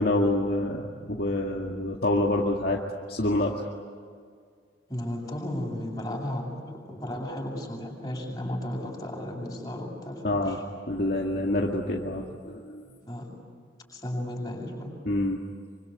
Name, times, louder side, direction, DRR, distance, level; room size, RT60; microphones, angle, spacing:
voice 1, 0.0-2.8 3.1-3.6 10.2-10.6 10.9-12.8 15.1-15.4, left 1 dB, 50° left, -1 dB, 2.1 m, -27 dB
voice 2, 4.9-10.6 13.1-13.3 13.9-14.9, left 1 dB, 20° left, -1 dB, 7.7 m, -34 dB
26.0 x 25.5 x 8.4 m, 2.1 s
head